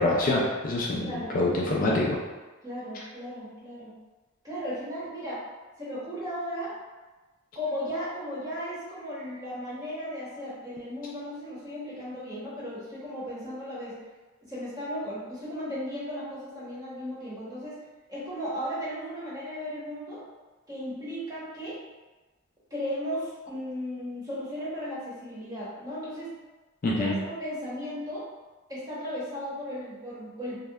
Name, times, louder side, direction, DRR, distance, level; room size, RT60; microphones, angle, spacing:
voice 1, 0.0-2.2 26.8-27.1, left 2 dB, 40° left, -3 dB, 0.3 m, -25 dB
voice 2, 1.0-1.4 2.6-3.9 4.4-5.4 5.8-6.7 7.5-13.9 14.4-17.8 18.1-20.2 20.7-21.8 22.7-26.4 26.8-28.2 28.7-30.6, equal, 20° right, -9 dB, 0.8 m, -35 dB
2.7 x 2.1 x 2.2 m, 1.2 s
head